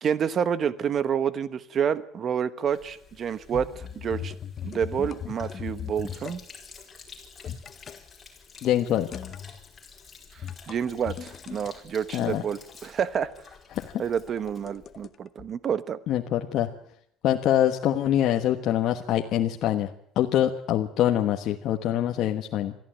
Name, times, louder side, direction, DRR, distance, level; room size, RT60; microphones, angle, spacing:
voice 1, 0.0-4.3 4.6-6.4 10.3-13.3 14.0-16.0, right 8 dB, 35° right, 14 dB, 1.1 m, -28 dB
Sink (filling or washing), 2.7-15.1, left 5 dB, 20° left, 5.0 m, -51 dB
sound 1, 3.5-6.4 7.4-8.0 9.1-9.6 10.4-11.7 13.1-15.1 15.4-15.5, left 8 dB, 35° left, 1.0 m, -38 dB
voice 2, 8.6-9.1 12.1-12.4 13.8-13.9 16.1-16.7 17.2-19.9 20.2-22.7, left 11 dB, 55° left, 3 dB, 1.3 m, -24 dB
23.0 x 14.0 x 9.1 m, 0.72 s
cardioid pair, 150°, 0 cm